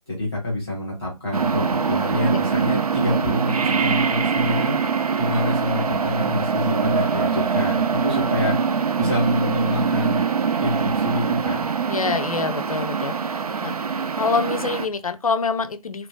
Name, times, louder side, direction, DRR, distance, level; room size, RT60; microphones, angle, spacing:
voice 1, 0.1-4.8 5.2-8.6 9.0-10.2 10.6-11.6, left 2 dB, 5° right, 0.5 m, -26 dB
sound 1, 1.3-14.9, right 6 dB, 70° right, 0.5 m, -23 dB
voice 2, 11.9-13.7 14.2-16.1, left 4 dB, 65° left, 0.5 m, -26 dB
2.9 x 2.6 x 3.5 m
figure-of-eight pair, 170°, 20 cm